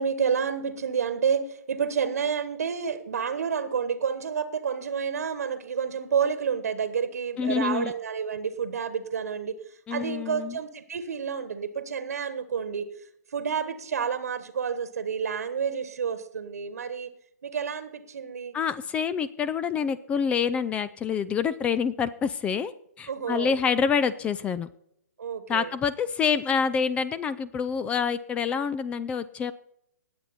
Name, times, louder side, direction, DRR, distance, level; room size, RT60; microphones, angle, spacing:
voice 1, 0.0-17.1 17.4-18.6 23.1-23.5 25.2-25.7, right 6 dB, 60° right, 12 dB, 1.3 m, -29 dB
voice 2, 7.4-7.9 9.9-10.6 18.5-22.7 23.0-24.7 25.5-29.5, left 6 dB, 15° left, 16 dB, 0.4 m, -27 dB
19.0 x 7.9 x 4.2 m, 0.74 s
figure-of-eight pair, 130°, 9 cm